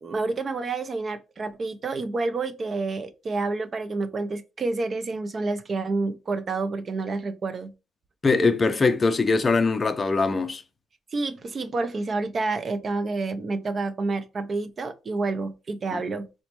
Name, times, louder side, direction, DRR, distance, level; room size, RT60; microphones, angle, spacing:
voice 1, 0.0-7.7 11.1-16.3, right 3 dB, 40° right, 0.4 m, -29 dB
voice 2, 8.2-10.6 15.9-16.0, left 4 dB, 30° left, 0.4 m, -22 dB
4.1 x 2.1 x 2.9 m
cardioid pair, 90°, 0 cm